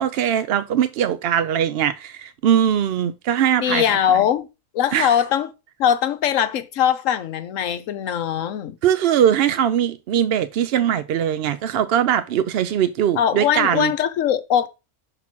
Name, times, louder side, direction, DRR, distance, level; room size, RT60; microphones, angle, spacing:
voice 1, 0.0-4.2 4.9-5.2 8.8-13.9, right 9 dB, 70° right, 0.5 m, -21 dB
voice 2, 3.6-4.5 4.7-5.5 5.8-8.8 13.2-14.7, left 9 dB, 65° left, 1.1 m, -21 dB
5.8 x 3.9 x 6.0 m
omnidirectional pair, 1.5 m